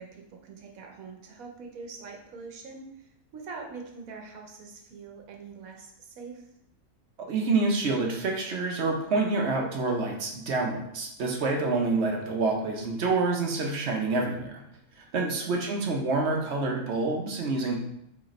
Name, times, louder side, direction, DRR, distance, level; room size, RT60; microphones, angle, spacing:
voice 1, 0.0-6.5 15.3-15.7, right 4 dB, 85° right, 2 dB, 1.2 m, -44 dB
voice 2, 7.3-14.6 15.0-17.8, right 3 dB, 60° right, 1 dB, 0.9 m, -27 dB
4.9 x 3.3 x 3.0 m, 0.77 s
omnidirectional pair, 1.4 m